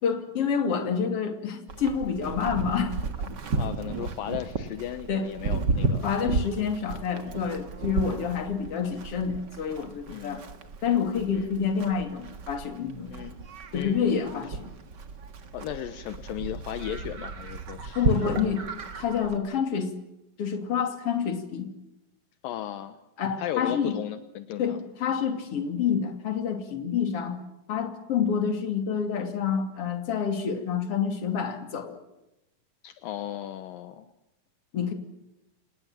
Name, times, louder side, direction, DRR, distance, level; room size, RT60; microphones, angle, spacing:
voice 1, 0.0-2.9 5.1-5.3 6.0-10.5 10.8-13.1 13.7-14.7 17.9-18.7 18.9-19.9 20.4-21.7 23.2-24.0 24.6-27.4 27.7-32.0 34.7-34.9, left 7 dB, 45° left, 6 dB, 3.4 m, -28 dB
Livestock farm animals working animals, 1.7-19.4, right 3 dB, 45° right, 1.6 m, -33 dB
voice 2, 3.6-6.0 7.9-8.2 10.1-10.4 11.3-11.5 13.1-13.4 13.7-14.0 14.3-14.4 15.5-18.5 22.4-23.0 23.4-24.9 32.8-34.1, left 11 dB, 75° left, 11 dB, 2.7 m, -36 dB
27.5 x 19.5 x 7.6 m, 0.91 s
omnidirectional pair, 4.1 m